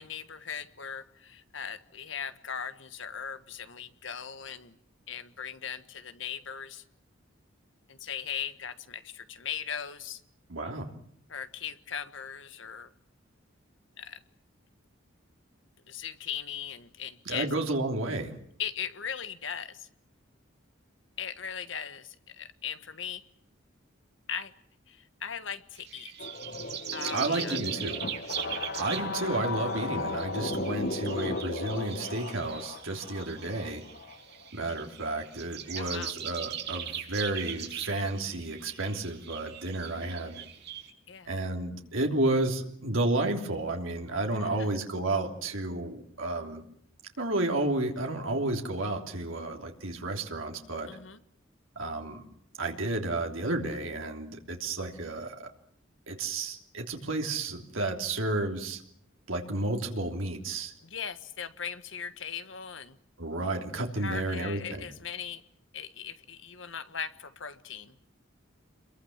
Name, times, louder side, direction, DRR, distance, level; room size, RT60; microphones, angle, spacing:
voice 1, 0.0-4.8 5.1-6.8 7.9-10.2 11.3-12.9 14.0-14.2 15.9-17.5 18.6-19.9 21.2-23.2 24.3-24.5 24.9-26.1 26.9-27.6 35.7-36.1 41.1-41.3 44.3-44.7 50.9-51.2 60.8-63.0 64.0-65.4 65.7-68.0, left 7 dB, 70° left, 11 dB, 1.5 m, -39 dB
voice 2, 10.5-10.9 17.2-18.4 27.1-28.1 28.8-33.8 34.5-40.4 41.3-46.6 47.2-51.0 51.7-52.2 52.6-55.5 56.1-58.8 59.3-60.7 63.2-64.9, right 2 dB, 85° right, 2 dB, 3.2 m, -31 dB
sound 1, 25.8-40.9, right 9 dB, 55° right, 5.0 m, -40 dB
sound 2, 26.2-34.5, left 2 dB, 50° left, 1.0 m, -36 dB
27.5 x 22.5 x 7.3 m, 0.68 s
head